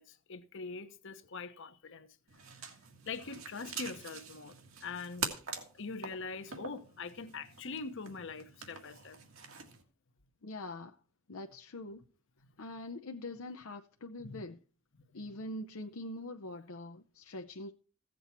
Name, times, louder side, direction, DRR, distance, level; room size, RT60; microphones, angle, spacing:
voice 1, 0.0-2.1 3.1-4.5 4.8-5.3 5.7-9.2 14.2-14.4 14.9-15.3, left 4 dB, 60° left, 1.1 m, -43 dB
sound 1, 2.3-9.8, right 5 dB, 75° right, 1.9 m, -45 dB
voice 2, 10.4-11.0 11.3-12.0 12.6-14.6 15.1-17.7, left 1 dB, 80° left, 0.7 m, -43 dB
15.5 x 7.7 x 4.4 m
head